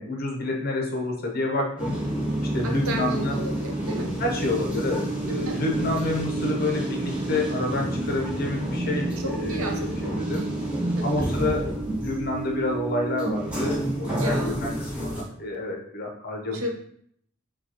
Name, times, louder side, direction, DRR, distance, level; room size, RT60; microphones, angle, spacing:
voice 1, 0.0-2.0 2.5-3.4 4.2-10.5 11.0-16.7, left 2 dB, 45° left, 1 dB, 0.8 m, -29 dB
sound 1, 1.8-15.2, right 1 dB, 5° right, 1.2 m, -29 dB
voice 2, 2.6-4.1 5.3-5.6 9.2-10.2 11.0-11.3 14.2-14.7 16.5-16.7, equal, 80° right, 3 dB, 0.8 m, -33 dB
6.7 x 2.3 x 2.9 m, 0.65 s
head